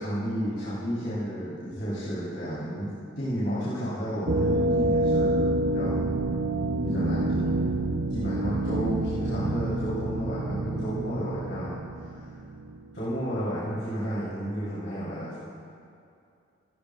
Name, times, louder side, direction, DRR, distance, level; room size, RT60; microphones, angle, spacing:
voice 1, 0.0-6.0 6.8-7.7 8.1-11.8 12.1-12.3 12.9-15.4, equal, 55° left, -10 dB, 3.7 m, -32 dB
sound 1, 4.3-12.9, right 2 dB, 60° right, 0.6 m, -27 dB
27.0 x 13.0 x 2.5 m, 2.5 s
head